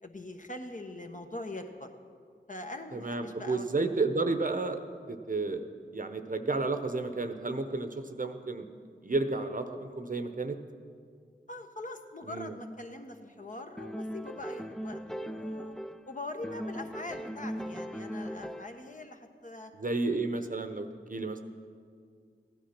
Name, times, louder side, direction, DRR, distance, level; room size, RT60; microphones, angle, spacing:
voice 1, 0.0-1.9 2.5-4.0 11.5-15.7 16.1-19.7, left 2 dB, 40° left, 4 dB, 1.2 m, -42 dB
voice 2, 2.9-4.8 5.1-8.7 9.0-10.6 12.2-12.5 19.8-21.4, right 3 dB, 45° right, 8 dB, 0.9 m, -32 dB
sound 1, 13.8-16.1 16.4-18.9, equal, 5° left, 0.4 m, -39 dB
15.5 x 10.0 x 6.0 m, 2.2 s
cardioid pair, 45°, 19 cm